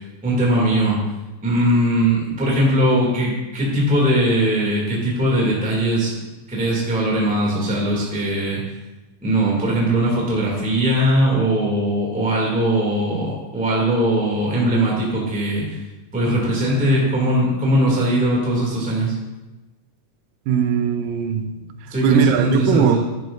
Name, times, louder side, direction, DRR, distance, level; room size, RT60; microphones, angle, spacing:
voice 1, 0.2-1.0 1.4-6.1 6.5-8.6 9.2-15.8 16.1-19.1 21.9-23.0, right 1 dB, 5° right, -4 dB, 1.9 m, -20 dB
voice 2, 20.5-21.6 22.0-23.0, right 8 dB, 85° right, 7 dB, 2.3 m, -19 dB
11.5 x 10.0 x 2.6 m, 1.1 s
omnidirectional pair, 4.0 m